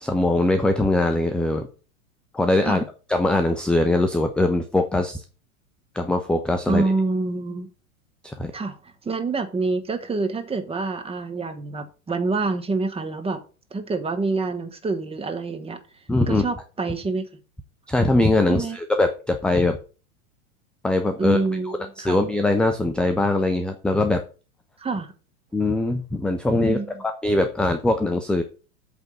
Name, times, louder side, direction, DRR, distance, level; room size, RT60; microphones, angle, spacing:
voice 1, 0.0-1.7 2.3-2.8 3.1-5.2 5.9-6.9 8.2-8.5 16.1-16.4 17.9-19.8 20.8-21.4 21.7-24.2 25.5-28.4, left 2 dB, ahead, 0.4 m, -22 dB
voice 2, 6.7-7.7 8.5-13.4 13.7-15.8 16.3-17.3 18.5-18.8 21.2-22.2 24.8-25.1 26.6-27.0, right 3 dB, 15° right, 1.2 m, -26 dB
8.2 x 3.6 x 6.6 m
hypercardioid pair, 105°, 42 cm